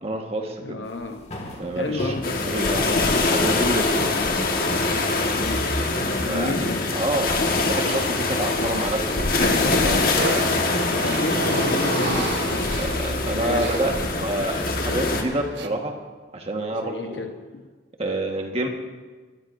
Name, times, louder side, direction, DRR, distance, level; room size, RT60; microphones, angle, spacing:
voice 1, 0.0-0.8 1.6-4.5 6.3-6.6 6.9-9.3 9.6-10.2 12.8-15.9 16.3-17.3 18.0-18.7, right 1 dB, 35° right, 2 dB, 1.5 m, -28 dB
voice 2, 0.6-1.3 1.7-2.7 5.3-5.9 6.2-6.9 11.0-13.7 14.3-14.5 16.7-17.6, left 2 dB, 85° left, 5 dB, 0.9 m, -32 dB
sound 1, 0.9-15.5, equal, 35° left, 2.0 m, -36 dB
sound 2, 2.2-15.2, left 3 dB, 55° left, 1.5 m, -24 dB
sound 3, 10.2-14.6 15.3-15.7, right 2 dB, 75° right, 1.0 m, -31 dB
24.5 x 13.5 x 2.7 m, 1.4 s
head